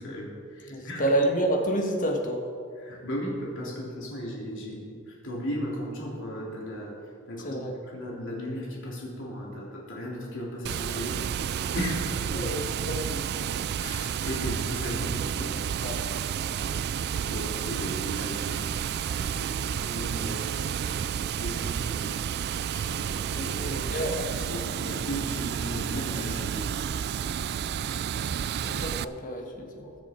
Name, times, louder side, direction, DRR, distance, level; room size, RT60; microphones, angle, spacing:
voice 1, 0.0-1.1 2.8-7.0 7.3-12.5 13.7-15.6 17.3-26.7 29.8-30.0, equal, 60° left, -4 dB, 3.5 m, -37 dB
voice 2, 0.7-2.4 7.4-7.7 12.3-13.2 15.8-16.0 23.1-24.3 28.6-29.9, right 1 dB, 40° left, 2 dB, 1.7 m, -29 dB
Water, 10.6-29.0, right 8 dB, 50° right, 0.3 m, -31 dB
21.0 x 7.1 x 4.5 m, 2.3 s
head